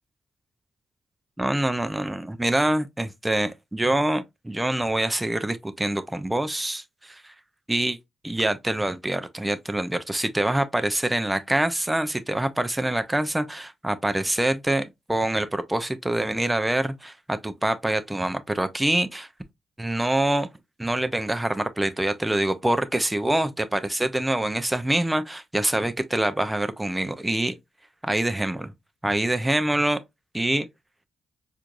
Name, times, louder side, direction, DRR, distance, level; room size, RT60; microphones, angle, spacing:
voice 1, 1.4-7.3 7.7-8.0 8.2-19.3 19.8-20.5 20.8-27.6 28.0-28.7 29.0-30.0 30.3-30.7, right 1 dB, 15° right, 0.5 m, -25 dB
4.4 x 2.5 x 2.5 m
supercardioid pair, 55°, 0 cm